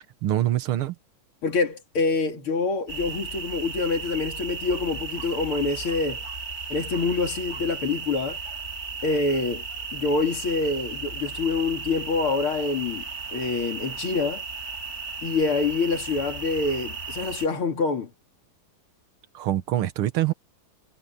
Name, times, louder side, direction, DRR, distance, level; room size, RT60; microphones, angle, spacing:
voice 1, 0.2-1.0 19.3-20.3, right 13 dB, 90° right, 2.0 m, -24 dB
voice 2, 1.4-6.2 6.7-8.4 9.0-9.6 9.9-14.4 15.2-18.1, left 4 dB, 85° left, 3.5 m, -26 dB
sound 1, 2.9-17.5, right 5 dB, 30° left, 5.3 m, -35 dB
omnidirectional pair, 2.3 m